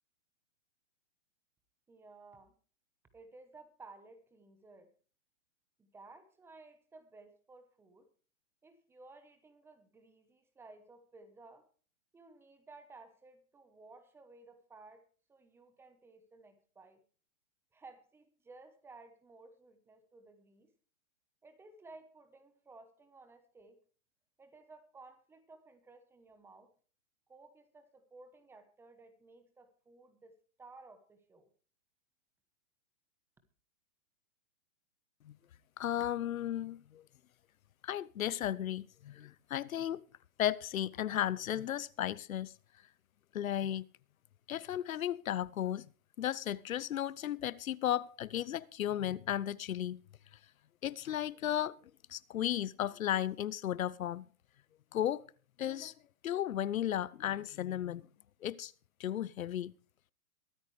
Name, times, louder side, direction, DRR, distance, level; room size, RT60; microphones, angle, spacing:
voice 1, 1.9-2.5 3.1-4.9 5.8-8.1 8.6-11.7 12.1-17.0 17.7-20.7 21.4-23.8 24.4-26.7 27.3-31.5, right 3 dB, 5° right, 1.0 m, -57 dB
voice 2, 35.8-37.0 37.8-40.0 40.4-42.5 43.3-43.8 44.5-45.8 46.2-50.0 50.8-51.8 52.1-54.3 54.9-55.2 55.6-55.9 56.2-58.1 58.4-58.7 59.0-59.7, left 11 dB, 80° left, 0.8 m, -34 dB
23.0 x 9.0 x 3.3 m
hypercardioid pair, 155°, 41 cm